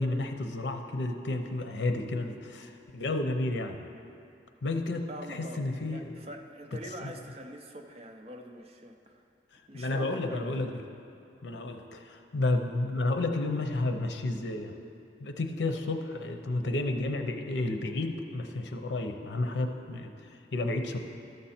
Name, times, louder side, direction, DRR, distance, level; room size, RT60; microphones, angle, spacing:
voice 1, 0.0-3.8 4.6-6.1 7.0-7.1 9.7-10.7 11.4-14.7 15.2-20.1 20.5-21.0, left 2 dB, 85° left, 6 dB, 0.7 m, -31 dB
voice 2, 5.1-5.6 5.9-9.2 9.7-10.5, right 1 dB, 35° right, 3 dB, 0.6 m, -44 dB
13.0 x 6.7 x 4.3 m, 2.5 s
head